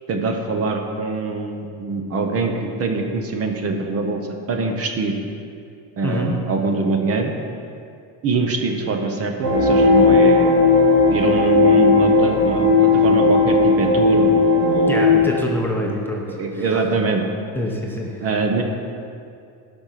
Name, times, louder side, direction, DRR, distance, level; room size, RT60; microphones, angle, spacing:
voice 1, 0.1-4.2 4.5-5.1 6.0-7.3 8.2-10.7 11.1-15.3 15.8-15.9 16.3-17.2 18.2-18.6, right 3 dB, 35° right, 4 dB, 0.9 m, -23 dB
voice 2, 6.0-6.4 14.9-16.2 16.5-16.7 17.6-18.2, left 1 dB, 5° left, -2 dB, 0.8 m, -25 dB
sound 1, 9.4-15.2, left 3 dB, 85° right, 2.4 m, -15 dB
12.0 x 5.4 x 5.8 m, 2.4 s
cardioid pair, 145°, 41 cm